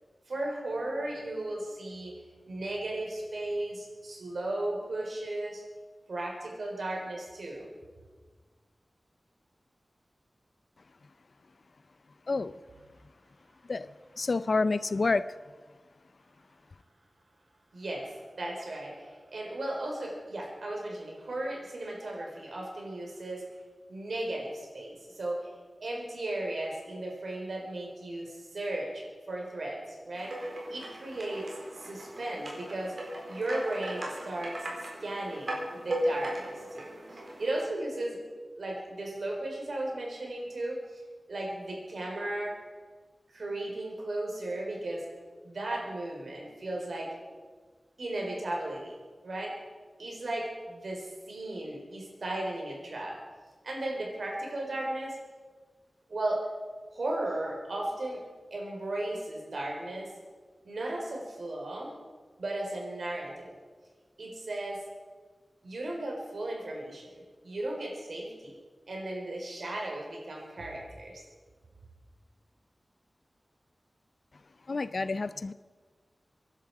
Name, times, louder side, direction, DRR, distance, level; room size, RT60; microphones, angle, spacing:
voice 1, 0.3-2.2 2.5-5.6 6.1-7.7 17.7-23.5 23.9-25.5 25.8-30.3 30.7-31.5 31.8-32.9 33.3-34.7 35.0-38.2 38.6-41.0 41.3-42.5 43.3-45.1 45.4-47.1 48.0-48.9 49.2-49.5 50.0-53.2 53.6-55.2 56.1-56.4 56.9-58.2 58.5-60.1 60.6-61.9 62.4-63.6 64.2-64.8 65.6-68.6 68.9-71.2, right 1 dB, 80° right, -1 dB, 4.4 m, -35 dB
voice 2, 14.2-15.2 74.7-75.5, left 3 dB, 60° left, 15 dB, 0.5 m, -28 dB
sound 1, 30.1-37.6, right 1 dB, 60° right, 4.1 m, -37 dB
24.5 x 11.0 x 4.9 m, 1.5 s
wide cardioid pair, 95°, 0 cm